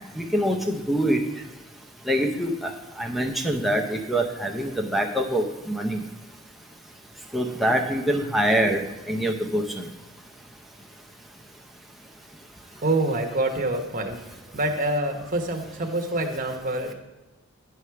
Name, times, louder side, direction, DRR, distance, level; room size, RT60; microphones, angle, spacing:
voice 1, 0.1-1.2 2.1-2.7 3.0-6.0 7.3-9.9, right 1 dB, ahead, 1 dB, 0.7 m, -25 dB
voice 2, 12.8-14.2 14.5-16.9, right 2 dB, 35° right, 2 dB, 1.0 m, -26 dB
9.8 x 4.8 x 5.8 m, 1.1 s
head